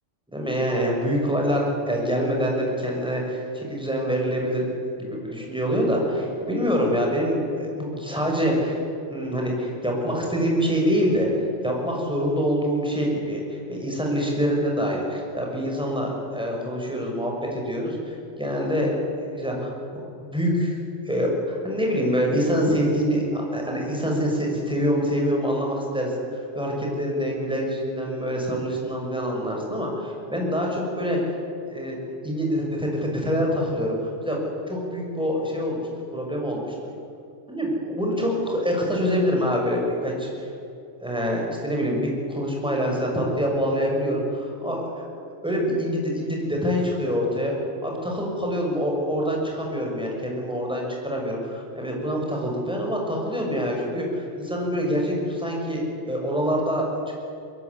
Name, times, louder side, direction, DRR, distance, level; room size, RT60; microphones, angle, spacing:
voice 1, 0.3-4.7 5.0-8.8 9.1-11.3 11.6-19.7 20.2-20.8 21.1-31.2 31.7-32.0 32.2-34.4 34.7-35.8 36.1-36.7 37.5-40.3 41.0-45.0 45.4-47.5 47.8-57.1, equal, 5° right, -1 dB, 6.5 m, -25 dB
23.0 x 21.5 x 9.8 m, 2.6 s
omnidirectional pair, 1.3 m